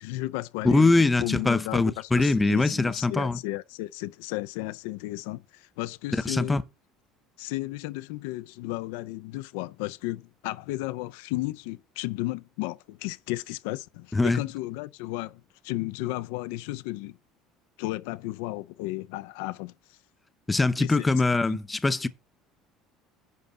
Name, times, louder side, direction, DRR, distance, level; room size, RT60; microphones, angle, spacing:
voice 1, 0.0-6.6 7.4-17.2 17.8-19.7 20.8-21.1 21.5-21.6, left 18 dB, 85° left, 0.4 m, -34 dB
voice 2, 0.6-3.4 6.1-6.6 14.1-14.4 20.5-22.1, left 3 dB, 10° left, 0.6 m, -23 dB
10.5 x 3.6 x 6.8 m
cardioid pair, 130°, 0 cm